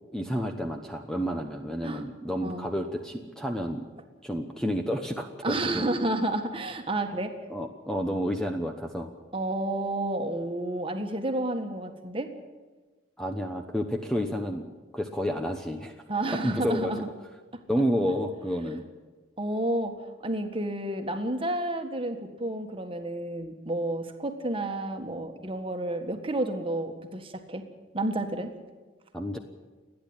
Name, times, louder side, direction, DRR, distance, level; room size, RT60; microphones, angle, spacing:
voice 1, 0.1-3.9 4.2-5.8 7.5-9.1 13.2-14.6 14.9-16.0 16.4-16.9 17.7-18.8 29.1-29.4, equal, 5° left, 4 dB, 1.0 m, -30 dB
voice 2, 5.4-7.3 9.3-12.3 16.1-17.1 19.4-19.9 20.2-27.6 27.9-28.5, right 1 dB, 30° right, 6 dB, 1.7 m, -30 dB
29.5 x 10.5 x 9.0 m, 1.3 s
head